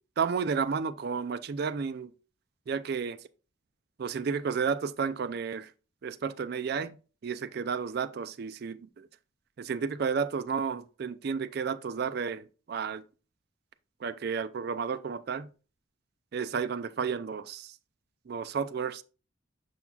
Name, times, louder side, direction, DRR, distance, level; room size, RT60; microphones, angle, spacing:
voice 1, 0.2-2.1 2.7-3.2 4.0-5.7 6.0-6.9 7.2-9.1 9.6-13.0 14.0-15.5 16.3-17.7 18.3-19.0, right 6 dB, 50° right, 0.3 m, -32 dB
6.9 x 5.8 x 2.3 m
head